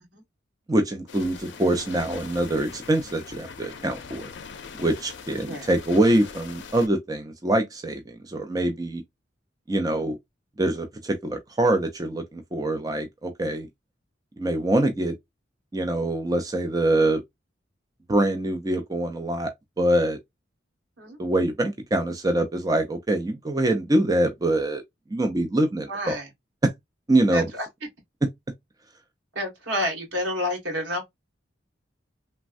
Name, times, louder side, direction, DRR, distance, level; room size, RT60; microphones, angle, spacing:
voice 1, 0.7-4.3 4.8-9.0 9.7-10.2 10.6-13.7 14.4-15.1 15.7-17.2 18.1-19.5 19.8-20.2 21.2-24.8 25.1-26.2 26.6-26.7 27.1-27.4, right 1 dB, 20° right, 0.4 m, -24 dB
sound 1, 1.1-6.9, left 5 dB, 70° left, 0.5 m, -41 dB
voice 2, 5.4-5.7 21.0-21.2 25.9-26.3 27.3-27.7 29.3-31.1, left 1 dB, 85° right, 1.6 m, -29 dB
3.3 x 2.1 x 2.4 m
head